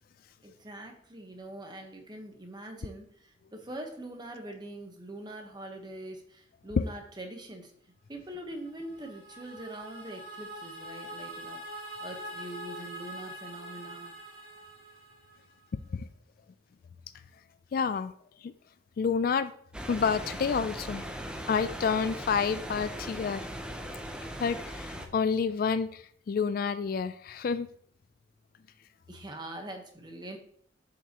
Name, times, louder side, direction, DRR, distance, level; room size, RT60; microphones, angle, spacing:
voice 1, 0.4-7.7 8.1-14.1 29.1-30.4, right 1 dB, 25° right, 4 dB, 1.1 m, -43 dB
sound 1, 8.5-15.6, right 1 dB, 45° right, 2.6 m, -44 dB
voice 2, 17.7-18.1 18.4-18.5 19.0-19.5 19.9-21.0 21.5-23.5 24.4-27.7, left 6 dB, 50° left, 13 dB, 0.3 m, -29 dB
sound 2, 19.7-25.1, equal, 5° right, 0.6 m, -39 dB
7.3 x 5.8 x 2.9 m, 0.62 s
head